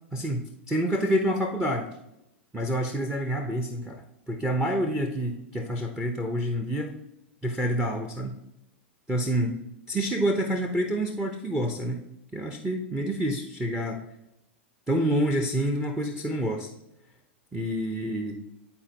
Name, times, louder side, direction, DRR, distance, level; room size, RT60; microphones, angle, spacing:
voice 1, 0.1-1.9 2.5-4.0 4.3-6.9 7.4-8.4 9.1-9.5 9.9-12.0 12.3-14.0 14.9-16.7 17.5-18.4, equal, 10° right, 3 dB, 0.9 m, -27 dB
11.0 x 4.4 x 2.9 m, 0.84 s
hypercardioid pair, 105°, 7 cm